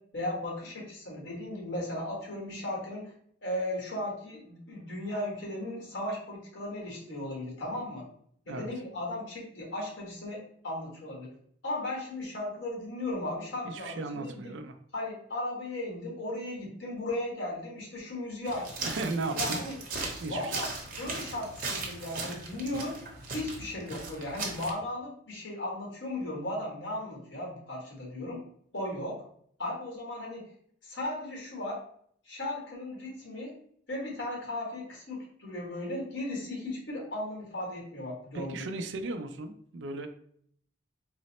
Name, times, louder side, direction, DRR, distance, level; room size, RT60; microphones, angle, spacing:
voice 1, 0.1-3.0 3.4-8.0 8.5-11.3 11.6-14.5 14.9-18.9 19.3-19.7 20.3-20.7 21.0-23.0 23.3-28.4 28.7-29.2 29.6-30.4 30.8-31.8 32.3-33.5 33.9-38.5, left 1 dB, 80° left, -3 dB, 1.5 m, -36 dB
voice 2, 13.6-14.8 18.8-19.6 20.2-20.5 38.3-40.1, right 3 dB, 80° right, 8 dB, 0.4 m, -36 dB
sound 1, 18.5-24.7, right 3 dB, 45° right, 0.8 m, -37 dB
3.9 x 2.0 x 4.1 m, 0.64 s
head